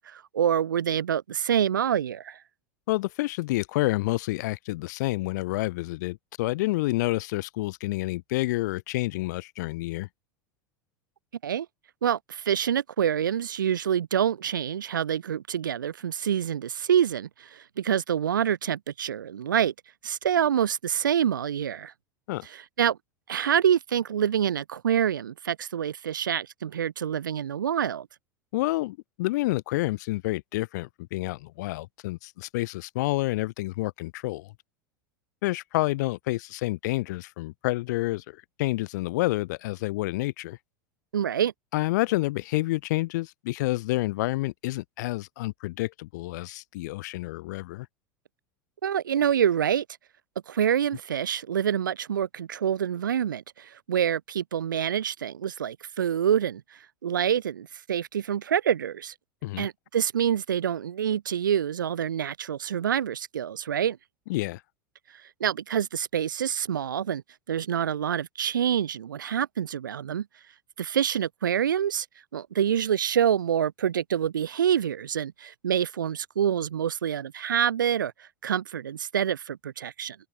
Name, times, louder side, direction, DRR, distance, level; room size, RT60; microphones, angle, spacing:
voice 1, 0.0-2.4 11.4-11.7 12.0-19.7 20.0-21.9 22.4-23.0 23.3-28.1 41.1-41.5 48.8-49.8 50.5-56.6 57.0-59.1 59.6-64.0 65.4-67.2 67.5-70.3 70.8-72.0 72.3-80.2, right 9 dB, 75° right, 3.3 m, -26 dB
voice 2, 2.9-10.1 22.3-22.5 28.5-34.5 35.4-38.2 38.6-40.6 41.7-47.9 59.4-59.7 64.3-64.6, left 19 dB, 60° left, 3.5 m, -29 dB
figure-of-eight pair, 80°, 11 cm